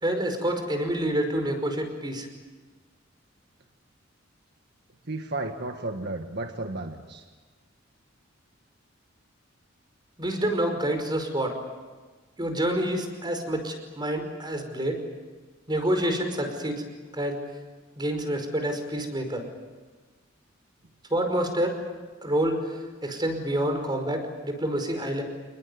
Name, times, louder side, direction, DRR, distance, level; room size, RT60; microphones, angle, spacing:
voice 1, 0.0-2.3 10.2-11.6 12.4-15.0 15.7-16.8 17.1-17.4 18.0-19.4 21.1-21.7 22.2-22.6 23.0-25.2, right 1 dB, 20° right, 5 dB, 5.3 m, -27 dB
voice 2, 5.1-7.2, right 2 dB, 60° right, 5 dB, 1.6 m, -33 dB
30.0 x 20.5 x 9.5 m, 1.4 s
head